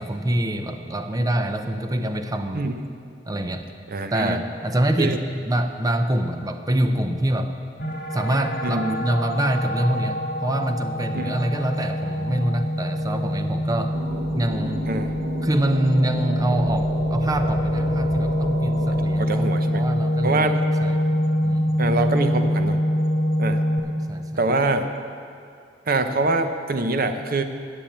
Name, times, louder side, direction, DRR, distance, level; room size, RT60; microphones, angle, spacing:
voice 1, 0.0-2.6 3.3-3.7 4.1-7.5 8.1-14.0 14.3-14.9 15.4-21.0 21.4-21.7 24.1-24.3, right 1 dB, 20° right, 7 dB, 0.6 m, -25 dB
voice 2, 3.9-4.4 5.0-5.2 8.6-9.0 11.1-11.3 14.9-15.1 18.9-19.8 20.2-20.6 21.8-22.8 23.4-23.6 24.4-24.9 25.9-27.4, right 2 dB, 50° right, 8 dB, 0.7 m, -24 dB
sound 1, 7.8-23.8, equal, 65° left, 1.8 m, -25 dB
sound 2, 13.9-19.1, equal, 80° right, 1.5 m, -33 dB
10.0 x 7.2 x 8.6 m, 2.4 s
head